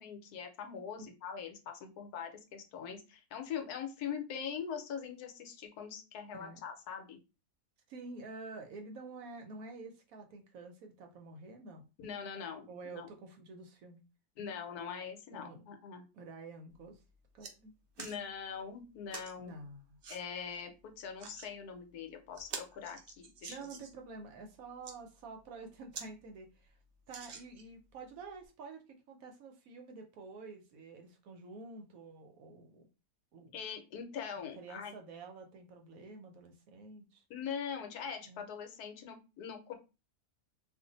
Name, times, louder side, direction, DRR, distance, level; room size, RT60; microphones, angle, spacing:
voice 1, 0.0-7.2 12.0-13.1 14.4-16.0 18.0-19.5 20.1-23.6 33.5-34.9 37.3-39.7, left 7 dB, 75° left, 5 dB, 1.2 m, -42 dB
voice 2, 7.9-11.8 12.7-14.0 15.3-15.6 16.1-17.0 17.3-18.1 19.4-20.0 23.5-26.8 27.1-32.9 33.3-33.6 34.4-37.2 38.2-38.5, right 3 dB, 70° right, 4 dB, 0.9 m, -49 dB
sound 1, 16.7-16.8 17.1-17.5 18.0-18.2 19.1-19.3 20.0-20.2 21.0-21.5 21.9-22.0 22.3-24.0 24.6-25.0 25.5-25.6 25.9-26.1 26.4-26.5 27.1-27.8 28.4-28.5, right 5 dB, 90° right, 0.5 m, -46 dB
2.5 x 2.4 x 3.9 m, 0.30 s
omnidirectional pair, 1.7 m